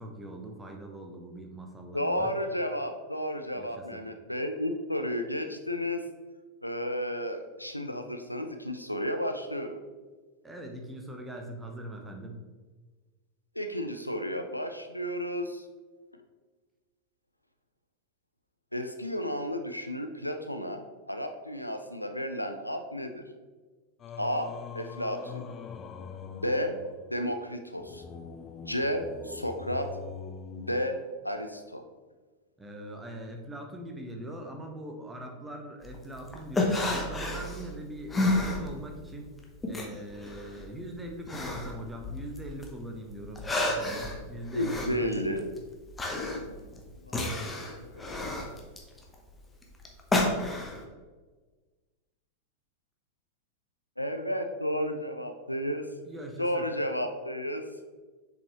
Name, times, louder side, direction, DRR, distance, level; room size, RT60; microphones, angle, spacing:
voice 1, 0.0-2.4 3.5-4.0 10.4-12.4 32.6-39.3 39.7-45.4 56.0-56.7, right 1 dB, 10° right, 2 dB, 1.0 m, -41 dB
voice 2, 1.9-6.0 6.6-9.7 13.5-15.6 18.7-20.8 21.1-23.2 24.2-25.5 26.2-26.8 27.1-28.0 28.6-29.9 30.5-31.0 31.2-31.8 44.5-45.5 46.3-46.5 47.0-48.1 54.0-55.9 56.4-57.6, equal, 90° left, 6 dB, 0.5 m, -32 dB
Singing, 24.0-31.4, left 6 dB, 25° left, 0.4 m, -43 dB
sound 1, 35.8-39.1 39.4-42.7 43.1-50.8, left 2 dB, 10° left, 1.0 m, -31 dB
7.0 x 5.4 x 3.1 m, 1.3 s
figure-of-eight pair, 90°, 0 cm